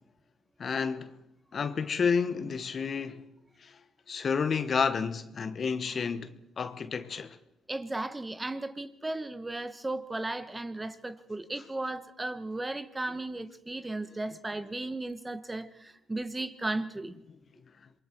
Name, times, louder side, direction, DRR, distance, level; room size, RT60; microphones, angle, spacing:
voice 1, 0.6-1.2 1.5-3.3 3.6-3.8 4.1-7.4, left 5 dB, 45° left, 1.3 m, -30 dB
voice 2, 7.7-17.1, right 2 dB, 20° right, 1.5 m, -35 dB
27.0 x 22.5 x 4.6 m
supercardioid pair, 70°, 0 cm